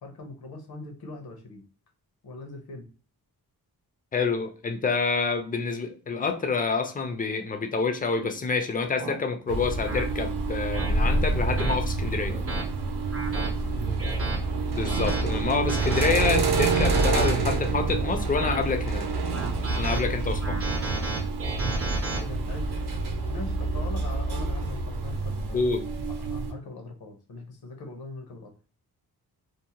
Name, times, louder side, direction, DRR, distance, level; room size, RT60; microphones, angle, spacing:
voice 1, 0.0-1.6 2.2-2.9 13.3-14.0 21.7-21.8 22.2-22.7 23.3-25.7 26.2-28.5, left 2 dB, 75° left, 3 dB, 0.8 m, -41 dB
voice 2, 4.1-12.3 14.7-19.1 19.7-20.6 25.5-25.8, left 4 dB, 25° left, 7 dB, 0.4 m, -27 dB
sound 1, 8.2-8.3 9.0-9.2 9.9-10.0 10.7-10.9 11.6-11.7 12.3-12.6 13.1-13.5 14.0-14.4 14.9-15.2 15.7-16.1 16.5-17.3 18.0-18.7 19.3-20.0 20.4-22.2, right 2 dB, 35° right, 0.6 m, -31 dB
sound 2, 9.5-26.5, right 3 dB, 80° right, 0.6 m, -28 dB
2.7 x 2.1 x 2.8 m, 0.38 s
wide cardioid pair, 130°, 38 cm